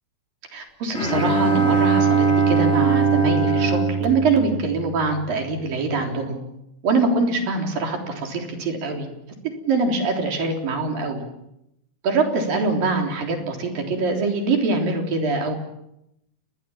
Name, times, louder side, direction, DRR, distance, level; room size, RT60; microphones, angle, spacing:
voice 1, 0.5-6.4 6.8-9.1 9.7-11.2 12.0-15.5, right 3 dB, 75° right, 3 dB, 5.4 m, -23 dB
Bowed string instrument, 0.9-5.3, right 5 dB, 20° left, 3.4 m, -21 dB
29.5 x 21.5 x 7.3 m, 0.82 s
omnidirectional pair, 4.1 m